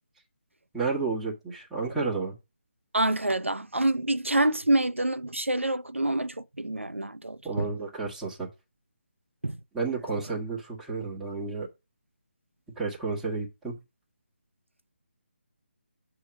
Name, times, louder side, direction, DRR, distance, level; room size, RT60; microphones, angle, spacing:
voice 1, 0.7-2.4 7.4-8.5 9.7-11.7 12.8-13.8, right 4 dB, 5° right, 1.6 m, -31 dB
voice 2, 2.9-7.7 9.4-9.6, right 1 dB, 90° right, 0.6 m, -27 dB
8.0 x 3.0 x 6.0 m
figure-of-eight pair, 150°, 7 cm